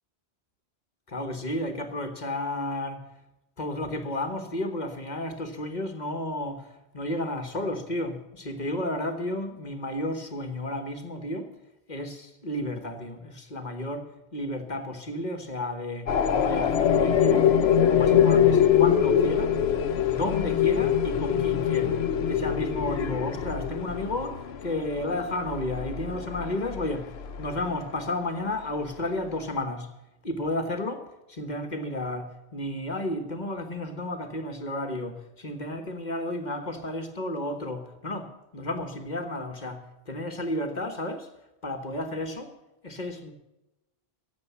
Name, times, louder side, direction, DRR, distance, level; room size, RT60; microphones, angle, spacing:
voice 1, 1.1-3.0 3.6-11.5 11.9-17.5 17.9-19.5 20.1-22.0 22.3-29.9 30.2-41.3 41.6-42.5 42.8-43.3, left 1 dB, 45° left, 1.4 m, -32 dB
sound 1, 16.1-27.7, left 8 dB, 75° left, 1.0 m, -24 dB
17.0 x 7.5 x 8.2 m
omnidirectional pair, 1.1 m